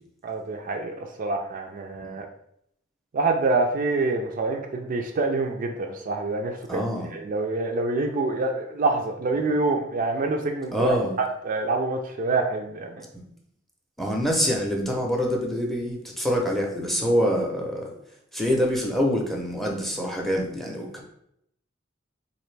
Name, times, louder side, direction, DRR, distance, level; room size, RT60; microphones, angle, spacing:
voice 1, 0.2-2.2 3.1-13.1, right 3 dB, 45° right, 3 dB, 0.4 m, -26 dB
voice 2, 6.7-7.1 10.7-11.2 14.0-17.9 18.3-21.0, equal, ahead, 0 dB, 0.6 m, -25 dB
4.1 x 2.6 x 3.2 m, 0.73 s
head